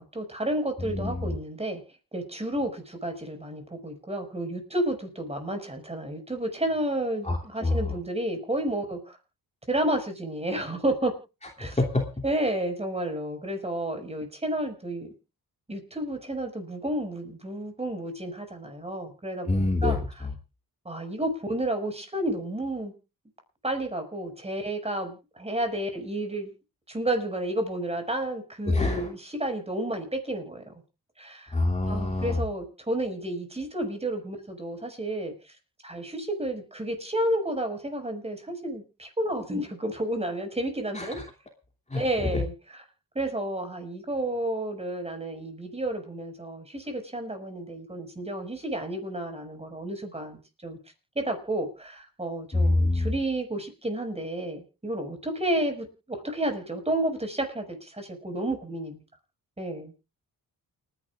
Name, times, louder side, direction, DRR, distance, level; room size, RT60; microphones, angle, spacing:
voice 1, 0.0-1.8 2.1-9.2 9.7-11.1 11.6-11.8 12.2-15.1 15.7-20.0 20.8-22.9 23.6-26.5 26.9-30.7 31.2-31.5 31.9-35.3 35.8-41.2 41.9-42.8 43.1-50.8 51.2-59.0 59.6-59.9, right 1 dB, 15° right, 5 dB, 6.0 m, -31 dB
voice 2, 0.8-1.4 7.2-7.9 11.6-12.0 19.4-20.3 28.7-29.1 31.5-32.4 40.9-41.2 41.9-42.0 42.3-42.4 52.5-53.1, left 2 dB, 20° left, 2 dB, 2.9 m, -26 dB
29.5 x 11.0 x 2.5 m, 0.31 s
cardioid pair, 105°, 37 cm